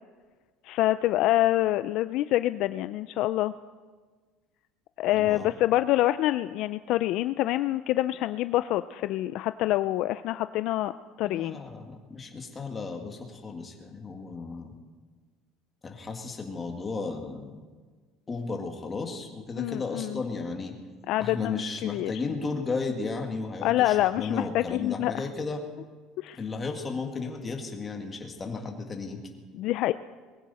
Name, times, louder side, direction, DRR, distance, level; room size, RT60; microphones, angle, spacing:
voice 1, 0.6-3.5 5.0-10.9 11.2-11.6 19.6-20.2 21.1-22.1 23.6-25.3 26.2-26.4 29.5-29.9, left 15 dB, 60° left, 12 dB, 0.4 m, -26 dB
voice 2, 5.1-5.5 11.2-14.7 15.8-17.6 18.3-20.8 21.2-25.6 26.4-29.2, left 4 dB, 20° left, 3 dB, 1.8 m, -34 dB
21.0 x 15.5 x 4.2 m, 1.4 s
cardioid pair, 150°, 0 cm